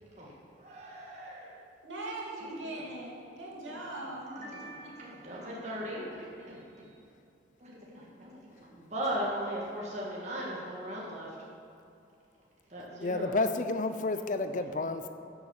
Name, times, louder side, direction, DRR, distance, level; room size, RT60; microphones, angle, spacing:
voice 1, 0.2-1.6 2.4-2.7 3.6-3.8 4.3-6.9 7.6-11.4 12.7-13.4 14.1-14.2 14.6-14.7, right 1 dB, 40° right, -5 dB, 1.8 m, -39 dB
voice 2, 1.8-5.1, right 1 dB, 85° right, -3 dB, 2.8 m, -41 dB
voice 3, 13.0-15.1, left 3 dB, 45° left, 9 dB, 0.5 m, -30 dB
11.0 x 7.9 x 7.2 m, 2.6 s
head